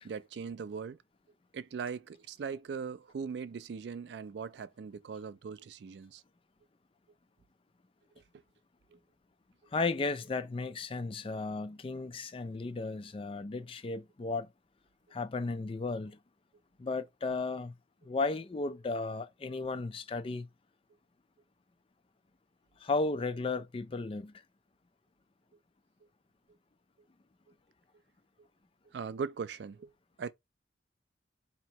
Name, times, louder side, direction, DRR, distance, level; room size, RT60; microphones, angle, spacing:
voice 1, 0.0-1.0 1.5-6.2 8.2-8.3 8.9-9.0 28.9-29.9 30.2-30.3, right 5 dB, 70° right, 0.3 m, -40 dB
voice 2, 9.7-14.5 15.1-16.2 16.8-17.7 18.0-20.5 22.8-24.3, left 3 dB, 30° left, 0.4 m, -34 dB
4.3 x 2.8 x 2.9 m
head